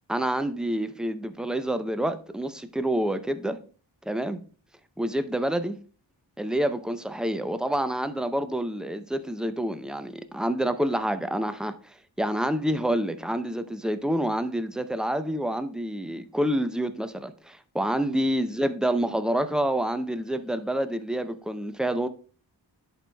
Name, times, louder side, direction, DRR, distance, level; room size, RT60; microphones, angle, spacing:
voice 1, 0.1-3.6 4.1-4.4 5.0-5.8 6.4-22.1, right 1 dB, ahead, 0.5 m, -28 dB
11.0 x 4.7 x 2.3 m
wide cardioid pair, 60°, 44 cm